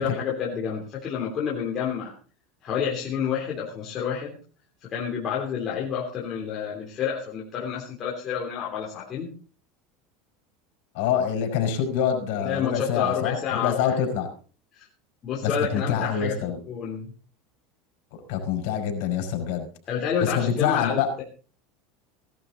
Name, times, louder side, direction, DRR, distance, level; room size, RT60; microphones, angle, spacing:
voice 1, 0.0-2.1 2.6-4.4 4.9-9.3 12.4-14.0 14.7-14.9 15.2-17.1 19.9-21.2, left 7 dB, 35° left, -3 dB, 3.3 m, -29 dB
voice 2, 10.9-14.3 15.4-16.6 18.1-19.7 20.2-21.1, left 8 dB, 70° left, 4 dB, 5.4 m, -26 dB
18.0 x 12.0 x 4.0 m, 0.40 s
supercardioid pair, 135°, 0 cm